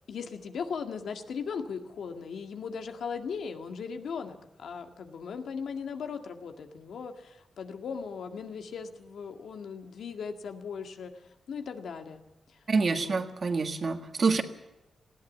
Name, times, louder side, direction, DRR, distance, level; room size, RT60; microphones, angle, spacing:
voice 1, 0.1-12.2 12.5-12.6 12.9-13.1, left 6 dB, 85° left, 6 dB, 1.9 m, -38 dB
voice 2, 12.7-14.4, right 4 dB, 40° right, 7 dB, 1.6 m, -27 dB
19.5 x 16.5 x 8.4 m, 0.96 s
wide cardioid pair, 155°, 0 cm